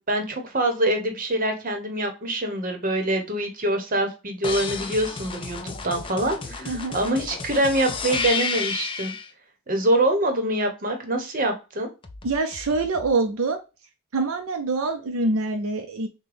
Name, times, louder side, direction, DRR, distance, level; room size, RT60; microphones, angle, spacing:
voice 1, 0.0-9.1 9.7-11.9, right 1 dB, 40° right, 5 dB, 0.9 m, -25 dB
sound 1, 4.4-9.3 12.0-13.1, left 5 dB, 25° left, 0.4 m, -32 dB
voice 2, 6.7-7.0 12.2-13.6 14.1-16.1, right 3 dB, 75° right, 4 dB, 0.5 m, -25 dB
6.0 x 2.2 x 3.4 m, 0.30 s
head